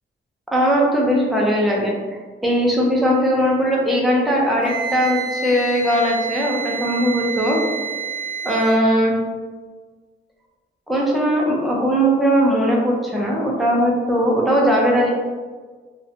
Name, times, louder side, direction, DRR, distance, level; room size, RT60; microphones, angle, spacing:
voice 1, 0.5-7.6 8.4-9.2 10.9-15.1, equal, ahead, -3 dB, 0.4 m, -19 dB
Wind instrument woodwind instrument, 4.6-8.8, right 5 dB, 40° left, 0.9 m, -28 dB
2.5 x 2.1 x 2.6 m, 1.4 s
wide cardioid pair, 140°, 20 cm